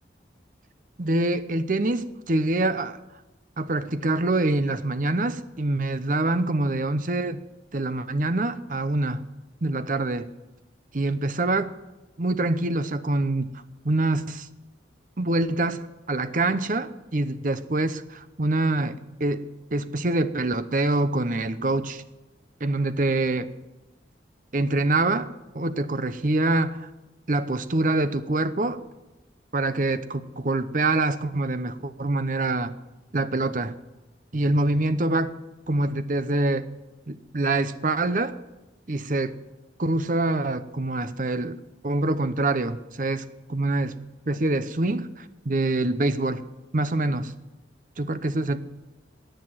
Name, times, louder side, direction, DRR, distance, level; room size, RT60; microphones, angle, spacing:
voice 1, 1.0-3.0 3.6-7.4 7.7-9.2 9.6-10.3 10.9-11.7 12.2-13.5 13.8-14.5 15.2-19.4 19.7-22.0 22.6-23.5 24.5-26.9 27.3-28.8 29.5-32.7 33.1-33.7 34.3-35.3 35.7-36.6 37.1-38.3 38.9-39.3 39.8-44.0 44.3-46.4 46.7-47.3 48.0-48.6, right 2 dB, 45° right, 12 dB, 0.7 m, -25 dB
18.0 x 6.7 x 9.6 m, 1.0 s
head